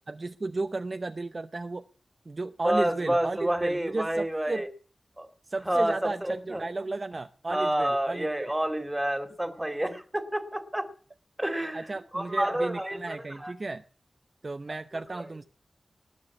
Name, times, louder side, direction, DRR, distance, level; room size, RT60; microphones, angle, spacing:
voice 1, 0.1-1.8 2.3-4.6 5.5-8.5 11.7-13.8 14.4-15.4, right 3 dB, 40° right, 9 dB, 0.7 m, -34 dB
voice 2, 2.6-4.7 5.2-5.3 5.6-6.6 7.5-10.9 11.4-11.9 12.1-13.5, right 1 dB, 10° right, 8 dB, 2.3 m, -29 dB
19.5 x 7.4 x 8.3 m, 0.43 s
wide cardioid pair, 100°, 0 cm